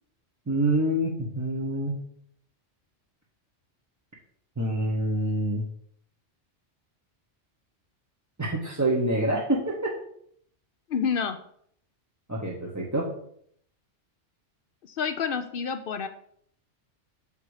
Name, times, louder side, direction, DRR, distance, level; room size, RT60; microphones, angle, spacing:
voice 1, 0.5-2.0 4.6-5.6 8.4-9.9 12.3-13.1, right 1 dB, 15° right, -4 dB, 0.9 m, -26 dB
voice 2, 10.9-11.4 14.8-16.1, left 6 dB, 60° left, 8 dB, 0.7 m, -28 dB
6.7 x 5.2 x 4.8 m, 0.66 s
omnidirectional pair, 1.2 m